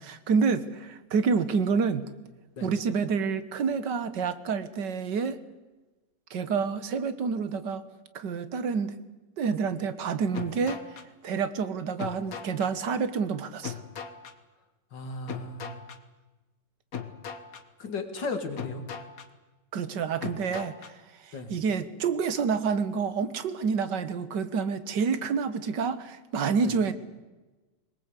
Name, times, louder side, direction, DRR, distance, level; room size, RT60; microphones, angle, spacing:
voice 1, 0.0-2.1 2.6-5.4 6.3-7.8 8.1-9.0 9.4-10.8 11.2-13.8 19.7-20.9 21.5-26.9, right 5 dB, 75° right, 13 dB, 1.8 m, -28 dB
sound 1, 10.3-11.1 12.0-12.7 13.6-14.3 15.3-16.0 16.9-17.6 18.6-19.3 20.2-20.9, left 7 dB, 55° left, 1.8 m, -39 dB
voice 2, 14.9-15.8 17.8-18.8 21.3-21.5 26.6-26.7, left 3 dB, 80° left, 6 dB, 3.0 m, -35 dB
22.5 x 20.0 x 8.3 m, 1.2 s
omnidirectional pair, 1.9 m